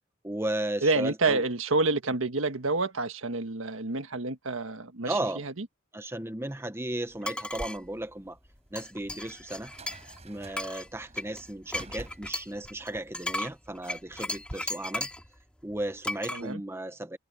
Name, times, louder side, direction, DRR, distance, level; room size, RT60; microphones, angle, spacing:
voice 1, 0.2-1.4 5.0-5.5 5.9-8.4 8.7-9.7 10.2-15.1 15.6-17.2, right 1 dB, 15° right, 1.0 m, -35 dB
voice 2, 0.8-5.6 16.3-16.6, right 3 dB, 90° right, 1.6 m, -28 dB
sound 1, 7.2-7.8 8.8-10.2 10.5-15.3 16.0-16.4, left 1 dB, 5° left, 3.0 m, -35 dB
sound 2, 7.5-14.5, right 1 dB, 35° right, 7.4 m, -48 dB
head